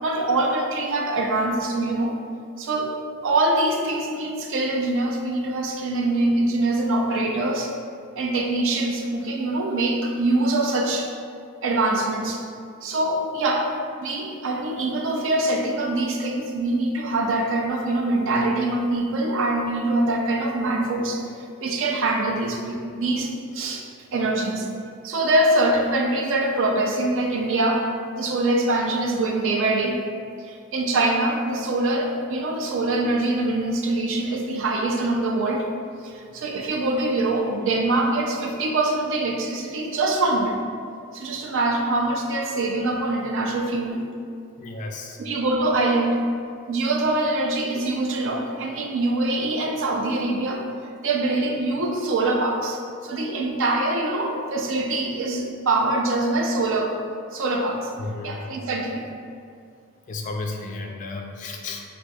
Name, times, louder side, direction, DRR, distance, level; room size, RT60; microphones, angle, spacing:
voice 1, 0.0-2.2 2.6-7.7 8.2-11.1 11.6-12.4 12.8-13.7 14.0-21.2 21.6-23.8 24.1-24.7 25.0-27.9 28.2-30.0 30.4-35.7 36.0-40.6 41.1-44.0 45.2-46.2 46.7-50.6 51.0-57.0 57.3-57.9 58.2-59.0, right 2 dB, 60° right, 1 dB, 0.4 m, -24 dB
voice 2, 44.6-45.2 58.0-58.4 60.1-61.8, left 3 dB, 35° left, 2 dB, 0.3 m, -33 dB
6.1 x 2.5 x 2.3 m, 2.3 s
head